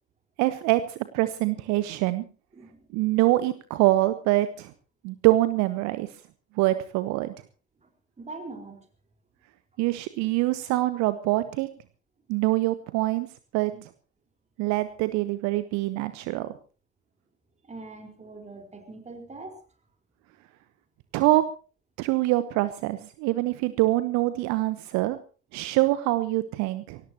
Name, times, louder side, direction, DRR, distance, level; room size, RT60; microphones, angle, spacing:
voice 1, 0.4-2.2 2.9-4.7 5.0-6.2 6.5-7.3 9.8-11.7 12.3-13.3 13.5-13.9 14.6-16.5 21.1-21.4 22.0-25.2 25.5-27.0, right 17 dB, 55° right, 13 dB, 1.1 m, -24 dB
voice 2, 2.5-2.9 7.8-7.9 8.2-8.8 17.6-19.5, right 3 dB, 20° right, 4 dB, 4.5 m, -42 dB
23.5 x 18.0 x 2.9 m, 0.37 s
figure-of-eight pair, 60°, 34 cm